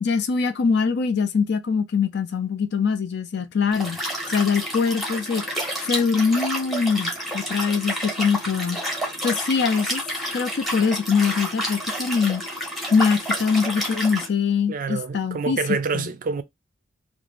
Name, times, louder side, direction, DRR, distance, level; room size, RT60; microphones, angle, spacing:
voice 1, 0.0-4.0 4.3-5.4 5.8-8.8 9.2-10.0 10.3-12.4 12.9-15.6 15.9-16.1, left 5 dB, 55° left, 0.4 m, -23 dB
Liquid, 3.7-14.3, equal, ahead, 0.7 m, -29 dB
voice 2, 14.7-16.4, right 4 dB, 45° right, 0.4 m, -27 dB
2.5 x 2.0 x 3.2 m
head